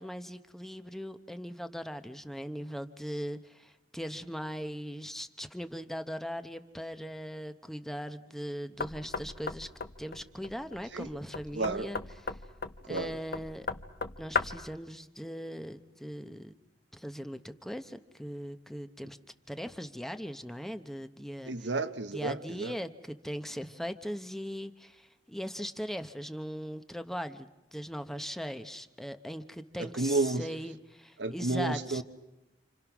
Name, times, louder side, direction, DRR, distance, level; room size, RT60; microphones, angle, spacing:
voice 1, 0.0-9.7 10.0-12.0 12.3-12.4 12.9-13.7 14.2-16.5 16.9-19.2 19.5-21.5 22.1-32.0, equal, ahead, 0.9 m, -39 dB
Knock, 8.8-14.7, left 5 dB, 60° left, 1.1 m, -37 dB
voice 2, 11.5-11.9 12.9-13.2 21.4-22.7 29.8-30.5 31.2-32.0, right 3 dB, 80° right, 1.3 m, -31 dB
29.5 x 27.5 x 6.1 m
head